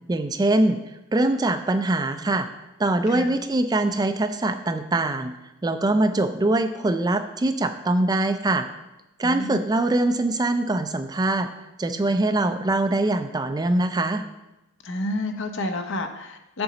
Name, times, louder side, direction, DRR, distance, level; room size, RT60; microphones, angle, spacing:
voice 1, 0.1-0.8 1.1-2.5 2.8-5.3 5.6-8.7 9.2-11.5 11.8-14.2, right 2 dB, 20° right, 8 dB, 0.4 m, -23 dB
voice 2, 9.2-9.6 14.8-16.6, left 2 dB, 65° left, 6 dB, 0.8 m, -30 dB
7.6 x 6.9 x 4.0 m, 0.95 s
head